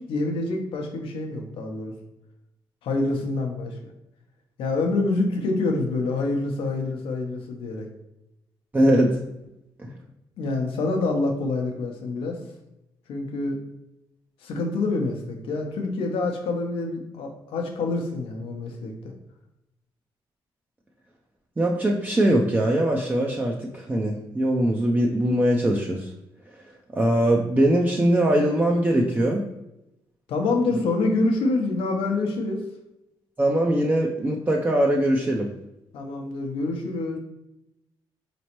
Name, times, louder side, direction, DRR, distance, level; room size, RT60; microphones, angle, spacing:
voice 1, 0.0-1.9 2.8-3.8 4.6-7.9 10.4-12.4 13.1-13.6 14.4-19.1 30.3-32.6 35.9-37.2, left 3 dB, 85° left, 3 dB, 0.7 m, -26 dB
voice 2, 8.7-9.2 9.8-9.9 21.6-26.1 26.9-29.4 33.4-35.5, right 1 dB, 20° right, 0 dB, 0.4 m, -21 dB
4.1 x 3.0 x 2.9 m, 0.91 s
cardioid pair, 85°, 9 cm